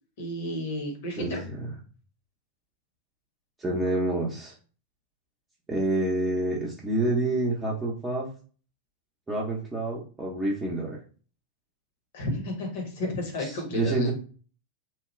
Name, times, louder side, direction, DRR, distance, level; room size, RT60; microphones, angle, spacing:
voice 1, 0.2-1.4 12.1-14.1, left 1 dB, 55° left, 2 dB, 0.9 m, -32 dB
voice 2, 1.2-1.5 3.6-4.5 5.7-8.3 9.3-11.0 13.4-14.1, right 2 dB, 10° right, -4 dB, 0.8 m, -28 dB
2.9 x 2.2 x 3.1 m, 0.39 s
figure-of-eight pair, 90°, 0 cm